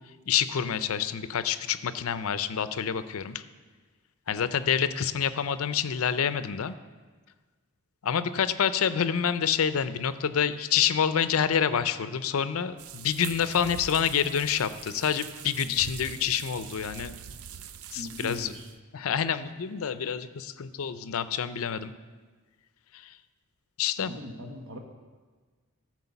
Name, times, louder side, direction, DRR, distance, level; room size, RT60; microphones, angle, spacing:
voice 1, 0.3-3.4 4.3-6.7 8.0-17.2 17.9-18.5 18.9-21.9 23.8-24.1, left 8 dB, 80° left, 13 dB, 0.5 m, -27 dB
sound 1, 12.8-18.8, right 8 dB, 90° right, 0.4 m, -43 dB
voice 2, 17.9-18.7 24.0-24.8, equal, 75° right, 2 dB, 1.2 m, -41 dB
13.5 x 4.7 x 7.0 m, 1.4 s
head